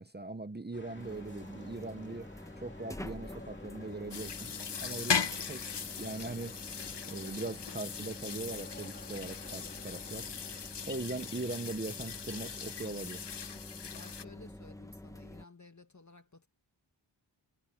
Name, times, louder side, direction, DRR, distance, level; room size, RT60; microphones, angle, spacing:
voice 1, 0.0-2.3 2.6-4.5 4.8-5.6 6.0-6.6 7.1-10.3 10.8-13.2, right 2 dB, 25° right, 1.0 m, -40 dB
sound 1, 0.7-10.7, left 2 dB, 25° left, 2.7 m, -53 dB
sound 2, 1.0-15.5, left 1 dB, 5° left, 1.1 m, -48 dB
sound 3, 4.1-14.2, left 7 dB, 65° left, 1.1 m, -39 dB
voice 2, 13.9-16.5, left 3 dB, 40° left, 2.4 m, -55 dB
wide cardioid pair, 80°, 44 cm